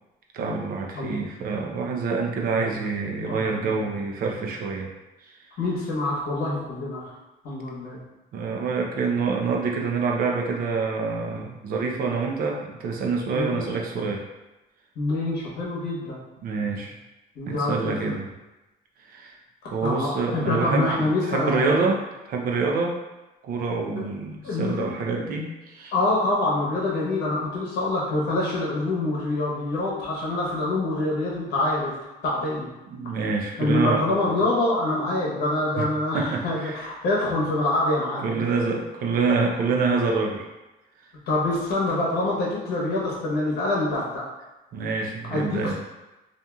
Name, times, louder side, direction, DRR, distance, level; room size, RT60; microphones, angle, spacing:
voice 1, 0.3-4.9 8.3-14.2 16.4-16.9 17.5-18.3 19.1-19.4 19.7-22.0 22.3-23.0 23.4-25.9 32.9-34.1 35.8-35.9 36.1-36.8 38.2-40.5 44.7-45.7, right 4 dB, 60° right, 0 dB, 0.5 m, -26 dB
voice 2, 3.3-3.8 5.6-7.0 7.4-8.0 13.3-13.6 15.0-16.2 17.4-17.7 19.8-21.9 23.9-24.1 24.4-24.9 25.9-31.9 32.2-32.7 33.6-38.5 41.3-44.2 45.3-45.7, left 2 dB, 70° left, -4 dB, 0.9 m, -25 dB
2.8 x 2.5 x 2.3 m, 1.0 s
cardioid pair, 110°, 17 cm